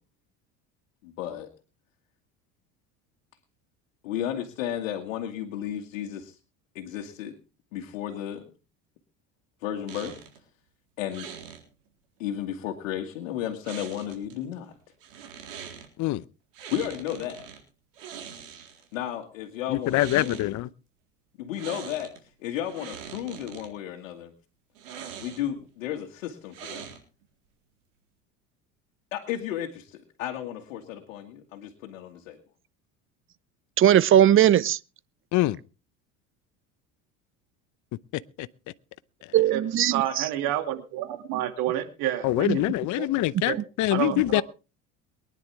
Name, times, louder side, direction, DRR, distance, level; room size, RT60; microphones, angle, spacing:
voice 1, 1.0-1.5 4.0-6.4 6.7-7.3 7.7-8.5 9.6-10.2 11.0-11.3 12.2-14.7 16.7-17.5 18.9-20.5 21.4-24.3 25.2-26.9 29.1-32.4, left 11 dB, 80° left, 2.0 m, -33 dB
sound 1, 9.9-10.4 11.1-11.6 13.6-14.3 15.0-15.9 16.5-17.6 17.9-18.9 19.8-20.5 21.5-22.2 22.5-23.7 24.8-25.6 26.5-27.2, right 8 dB, 80° right, 3.9 m, -42 dB
voice 2, 19.7-20.7 35.3-35.6 38.4-38.5 39.2-39.3 42.2-44.4, left 16 dB, 50° left, 0.7 m, -24 dB
voice 3, 33.8-34.8 39.3-40.2 42.5-42.6, right 11 dB, 35° right, 0.7 m, -19 dB
voice 4, 39.9-42.6 43.0-43.1 43.5-43.6 43.9-44.4, right 12 dB, 65° right, 2.4 m, -29 dB
23.0 x 10.5 x 3.5 m
hypercardioid pair, 80°, 38 cm